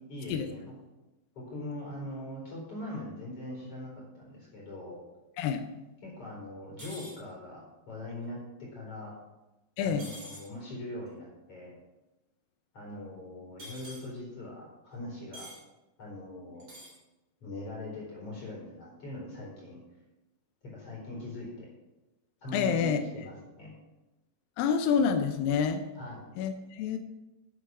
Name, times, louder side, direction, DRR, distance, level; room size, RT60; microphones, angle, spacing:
voice 1, 0.1-0.7 1.3-5.0 6.0-7.6 7.9-9.1 9.8-11.7 12.7-15.5 16.0-16.7 17.4-19.8 20.6-21.7 22.4-23.7 25.9-26.3, left 1 dB, 35° left, -4 dB, 4.9 m, -41 dB
sound 1, 6.8-7.2 10.0-10.5 13.6-14.0 15.3-15.6 16.6-17.0, equal, 25° right, 3.6 m, -46 dB
voice 2, 9.8-10.1 22.5-23.0 24.6-25.8 26.4-27.0, left 7 dB, 85° left, 7 dB, 2.0 m, -27 dB
10.5 x 8.4 x 6.1 m, 1.0 s
omnidirectional pair, 5.0 m